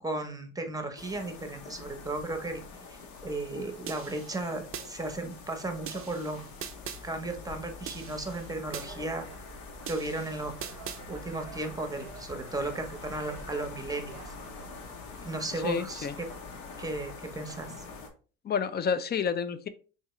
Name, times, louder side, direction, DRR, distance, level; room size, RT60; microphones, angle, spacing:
voice 1, 0.0-2.6 2.9-6.4 7.0-9.2 9.9-10.5 11.1-14.3 15.2-16.3 16.8-17.8, right 2 dB, 10° right, 6 dB, 0.8 m, -35 dB
sound 1, 1.0-18.1, left 4 dB, 80° left, 0.9 m, -45 dB
sound 2, 3.9-4.9 5.9-7.0 7.9-8.9 9.9-11.0, right 8 dB, 40° right, 0.5 m, -41 dB
sound 3, 8.7-14.9, right 8 dB, 85° right, 0.7 m, -49 dB
voice 2, 15.6-16.1 18.4-19.7, left 6 dB, 30° left, 12 dB, 0.4 m, -29 dB
3.6 x 2.8 x 3.0 m, 0.37 s
supercardioid pair, 85°, 35 cm